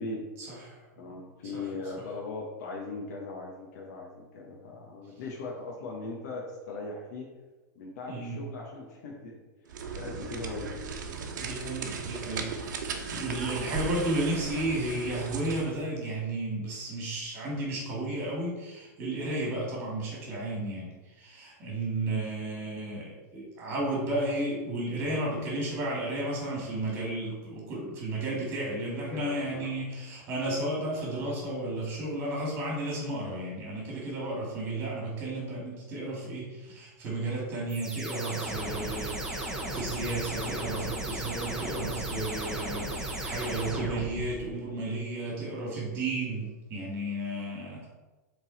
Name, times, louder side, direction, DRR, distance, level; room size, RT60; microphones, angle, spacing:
voice 1, 0.4-1.1 1.5-1.6 8.1-8.4 11.4-12.8 13.1-47.9, right 2 dB, 25° right, -3 dB, 2.3 m, -33 dB
voice 2, 1.0-7.3 7.7-9.4 9.7-10.8 11.9-12.1 28.9-29.7 30.3-30.4, left 3 dB, 60° left, -2 dB, 1.3 m, -39 dB
sound 1, 9.7-15.7, right 5 dB, 85° right, 0.9 m, -37 dB
sound 2, 37.7-44.5, right 1 dB, 5° right, 0.8 m, -35 dB
7.6 x 4.0 x 4.2 m, 1.2 s
supercardioid pair, 165°, 10 cm